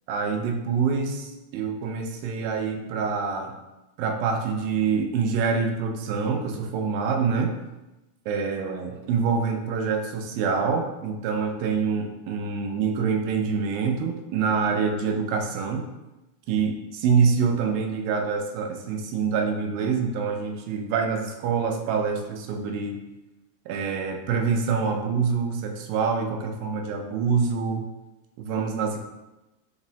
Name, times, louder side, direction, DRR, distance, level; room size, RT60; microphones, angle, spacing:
voice 1, 0.1-3.5 4.0-7.6 8.3-15.9 16.5-23.0 23.7-27.9 28.4-29.0, right 5 dB, 85° right, 3 dB, 2.3 m, -26 dB
6.1 x 3.0 x 2.7 m, 1.0 s
omnidirectional pair, 4.0 m